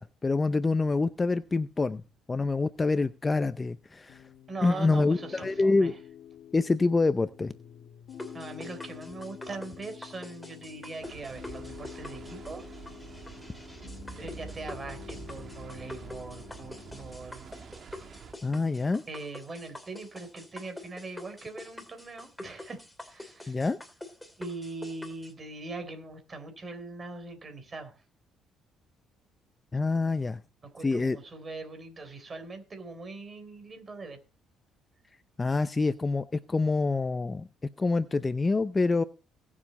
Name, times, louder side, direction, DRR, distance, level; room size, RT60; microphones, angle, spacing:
voice 1, 0.2-2.0 2.3-4.2 4.6-5.9 6.5-7.5 18.4-19.0 23.5-23.8 29.7-30.4 30.8-31.2 35.4-37.5 37.8-39.0, left 3 dB, 20° left, 13 dB, 0.6 m, -26 dB
Piano, 4.1-17.2, left 9 dB, 65° left, 1.1 m, -48 dB
voice 2, 4.5-6.0 8.3-12.6 14.2-17.5 19.1-23.6 24.4-28.0 30.6-34.2, right 3 dB, 30° right, 8 dB, 3.7 m, -41 dB
sound 1, 8.1-25.3, left 1 dB, 5° left, 2.7 m, -46 dB
sound 2, 11.0-18.3, right 5 dB, 45° right, 1.9 m, -46 dB
18.0 x 7.4 x 4.2 m, 0.32 s
cardioid pair, 105°, 0 cm